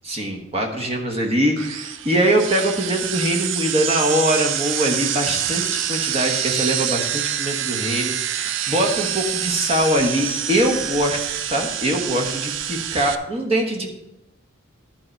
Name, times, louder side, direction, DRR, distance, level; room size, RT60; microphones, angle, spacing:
voice 1, 0.1-11.2 11.5-13.9, right 1 dB, 30° right, 2 dB, 1.1 m, -22 dB
sound 1, 1.6-13.2, right 10 dB, 65° right, 0.4 m, -26 dB
10.5 x 4.4 x 5.3 m, 0.91 s
head